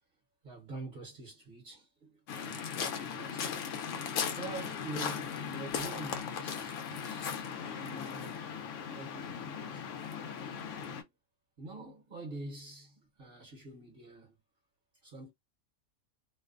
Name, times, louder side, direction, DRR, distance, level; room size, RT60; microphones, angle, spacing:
voice 1, 0.4-3.5 4.4-8.5 8.9-9.9 10.7-11.1 11.6-14.3 15.0-15.3, right 2 dB, 50° right, 0.9 m, -46 dB
Waves surf, 2.3-11.0, left 7 dB, 75° left, 0.9 m, -38 dB
2.6 x 2.1 x 2.3 m
omnidirectional pair, 1.3 m